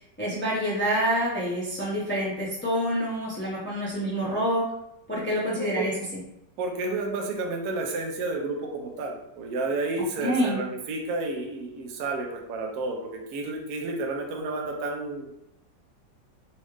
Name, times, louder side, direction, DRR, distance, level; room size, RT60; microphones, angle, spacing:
voice 1, 0.2-4.6 5.1-5.9 10.2-10.6, equal, 10° left, -7 dB, 0.6 m, -27 dB
voice 2, 5.6-5.9 6.6-15.3, right 3 dB, 70° right, 1 dB, 1.1 m, -31 dB
4.1 x 2.4 x 3.1 m, 0.83 s
omnidirectional pair, 1.9 m